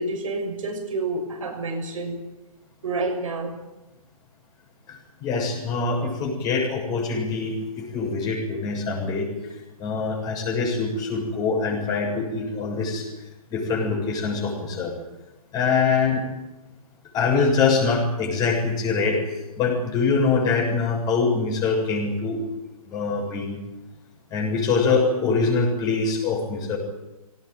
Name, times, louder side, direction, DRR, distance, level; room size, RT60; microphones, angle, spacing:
voice 1, 0.0-2.2 2.8-3.6, right 2 dB, 60° right, 5 dB, 6.6 m, -28 dB
voice 2, 4.9-9.5 9.8-13.1 13.5-14.9 15.5-16.2 17.1-22.4 22.8-23.6 24.3-26.8, left 4 dB, 20° left, -1 dB, 7.3 m, -24 dB
23.5 x 18.5 x 9.6 m, 1.0 s
figure-of-eight pair, 130°, 19 cm